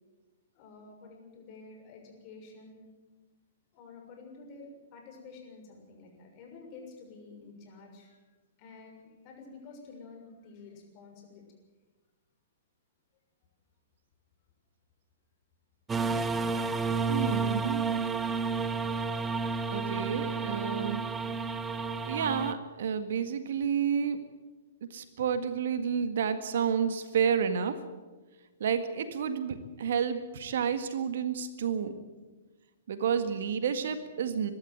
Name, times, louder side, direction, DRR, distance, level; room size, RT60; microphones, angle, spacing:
voice 1, 0.5-2.9 3.7-8.2 8.6-11.4, left 4 dB, 40° left, 1 dB, 6.5 m, -50 dB
sound 1, 15.9-22.5, right 4 dB, 15° right, 0.9 m, -31 dB
voice 2, 17.1-17.9 19.7-21.0 22.1-24.2 24.9-27.8 28.6-32.0 32.9-34.5, right 7 dB, 60° right, 10 dB, 1.8 m, -30 dB
23.0 x 12.5 x 9.2 m, 1.2 s
figure-of-eight pair, 115°, 0 cm